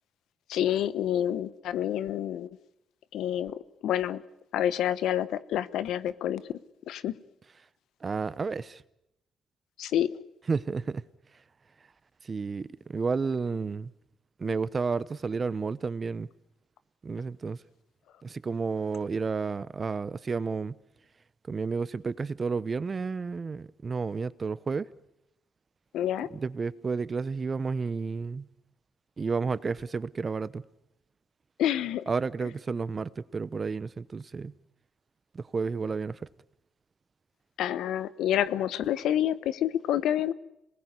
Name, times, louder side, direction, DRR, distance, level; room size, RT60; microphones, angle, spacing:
voice 1, 0.5-2.5 3.1-4.2 4.5-6.5 6.9-7.1 9.8-10.1 25.9-26.3 31.6-32.0 37.6-40.3, left 11 dB, 80° left, 1.1 m, -28 dB
voice 2, 8.0-8.8 10.5-11.0 12.2-13.9 14.4-16.3 17.0-17.6 18.2-20.8 21.5-24.9 26.3-28.5 29.2-30.7 32.1-34.5 35.3-36.3, right 4 dB, 35° right, 1.0 m, -31 dB
27.0 x 20.0 x 9.8 m
cardioid pair, 90°, 0 cm